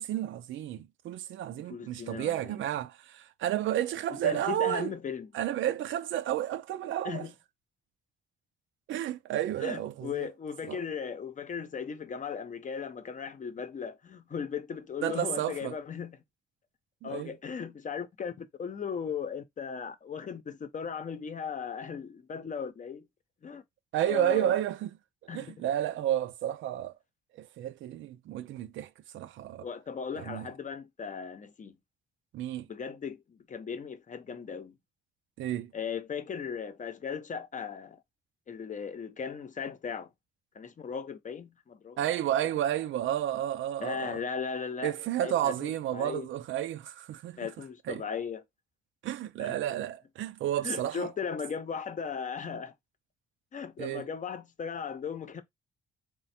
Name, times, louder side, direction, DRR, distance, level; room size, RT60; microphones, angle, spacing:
voice 1, 0.0-4.9 5.3-7.3 8.9-10.3 10.6-10.8 15.0-15.8 17.0-17.3 23.9-24.9 25.3-26.9 27.4-29.7 30.2-30.5 32.3-32.7 35.4-35.7 42.0-44.2 44.8-47.5 47.9-48.0 49.0-51.1 53.8-54.1, right 12 dB, 75° right, 0.5 m, -31 dB
voice 2, 1.6-2.6 4.2-5.3 7.0-7.3 9.6-16.2 17.0-23.1 23.4-23.6 24.0-24.6 25.3-25.5 29.6-31.8 32.7-34.8 35.7-38.0 38.5-40.1 40.5-42.0 43.8-44.9 45.2-46.3 47.4-48.4 49.4-49.6 50.6-52.7 53.5-55.4, left 6 dB, 40° left, 0.7 m, -37 dB
3.2 x 2.3 x 4.2 m
cardioid pair, 90°, 20 cm